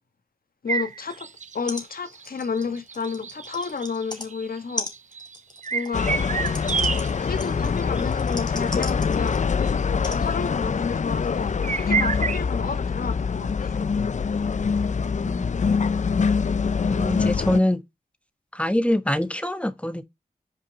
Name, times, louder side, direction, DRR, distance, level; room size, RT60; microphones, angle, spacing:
voice 1, 0.6-1.3 1.5-4.9 5.7-6.2 7.2-9.5 10.0-13.9, left 5 dB, 70° left, 1.6 m, -31 dB
sound 1, 0.7-7.4 7.8-8.0 8.3-8.4 9.6-9.7 11.6-12.4, right 6 dB, 50° right, 0.5 m, -29 dB
sound 2, 1.4-1.5 1.7-1.9 2.1-4.3 4.8-9.5 10.0-10.2 11.0-11.1, left 2 dB, 25° left, 2.4 m, -37 dB
sound 3, 5.9-17.6, left 5 dB, 50° left, 0.5 m, -24 dB
voice 2, 15.2-15.5 16.9-17.8 18.5-20.0, left 1 dB, 10° left, 1.3 m, -24 dB
5.8 x 5.1 x 5.0 m
cardioid pair, 40°, 16 cm